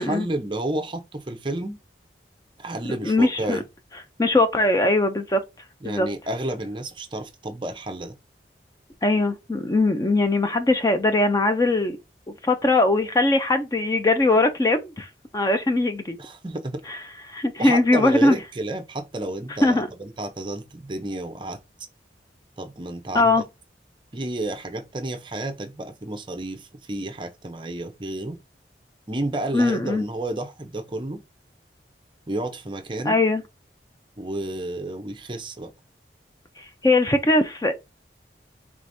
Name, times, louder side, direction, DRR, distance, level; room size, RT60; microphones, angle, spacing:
voice 1, 0.0-1.8 2.6-3.6 5.8-8.1 16.2-16.8 17.6-21.6 22.6-23.4 24.1-28.4 29.1-31.2 32.3-33.2 34.2-35.7, right 1 dB, 25° right, 0.6 m, -31 dB
voice 2, 3.0-3.6 4.2-5.4 5.8-6.1 9.0-12.0 12.4-15.1 15.3-16.2 16.9-17.0 17.3-18.3 19.6-19.9 23.1-23.4 29.5-30.0 33.1-33.4 36.6-37.7, left 2 dB, 20° left, 0.4 m, -20 dB
4.9 x 3.4 x 2.6 m
head